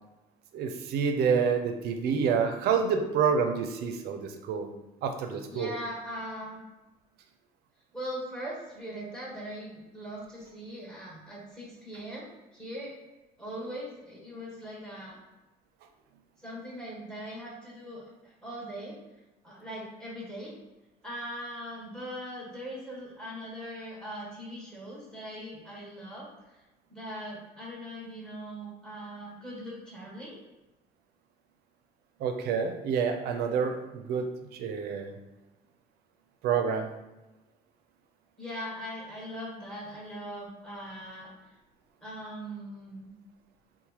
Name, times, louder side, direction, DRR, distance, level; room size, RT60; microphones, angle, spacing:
voice 1, 0.5-4.7 5.0-5.7 32.2-35.2 36.4-36.9, right 6 dB, 70° right, 6 dB, 0.4 m, -28 dB
voice 2, 5.5-6.6 7.9-12.9 13.4-15.2 16.4-19.0 19.4-20.6 21.0-26.3 26.9-30.4 38.4-41.3 42.0-43.1, equal, 5° left, -5 dB, 1.2 m, -40 dB
3.0 x 2.1 x 2.8 m, 1.1 s
cardioid pair, 110°, 17 cm